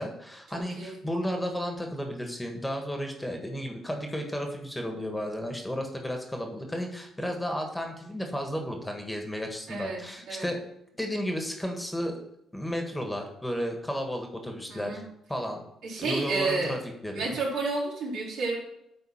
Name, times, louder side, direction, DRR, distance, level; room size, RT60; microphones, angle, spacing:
voice 1, 0.0-10.6 11.0-12.2 12.5-15.0 15.3-15.6 16.0-17.4, equal, 5° left, 3 dB, 1.5 m, -33 dB
voice 2, 0.5-1.0 9.7-10.0 10.3-10.5 14.7-15.0 15.8-16.7 17.1-18.5, right 3 dB, 85° right, -5 dB, 3.6 m, -31 dB
9.5 x 4.0 x 5.7 m, 0.80 s
cardioid pair, 90°, 0 cm